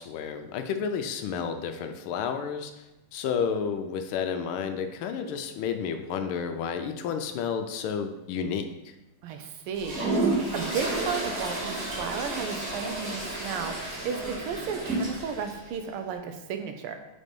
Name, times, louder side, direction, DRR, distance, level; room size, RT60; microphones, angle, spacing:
voice 1, 0.0-2.7 3.1-8.9, left 6 dB, 80° left, 7 dB, 1.5 m, -31 dB
voice 2, 9.2-13.8 14.0-17.0, right 6 dB, 90° right, 6 dB, 1.6 m, -34 dB
Toilet flush, 9.7-15.6, right 2 dB, 55° right, 2.7 m, -31 dB
4.6 x 4.2 x 5.2 m, 0.97 s
omnidirectional pair, 2.3 m